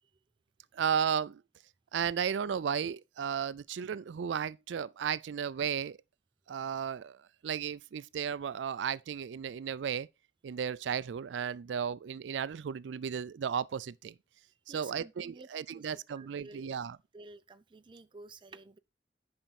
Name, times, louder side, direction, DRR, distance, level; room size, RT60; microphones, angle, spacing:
voice 1, 0.7-1.4 1.9-6.0 6.5-10.1 10.4-14.1 14.7-17.0, right 7 dB, 80° right, 0.4 m, -34 dB
voice 2, 14.7-15.5 15.7-16.8 17.1-18.8, right 3 dB, 25° right, 0.5 m, -52 dB
9.0 x 5.7 x 4.1 m
head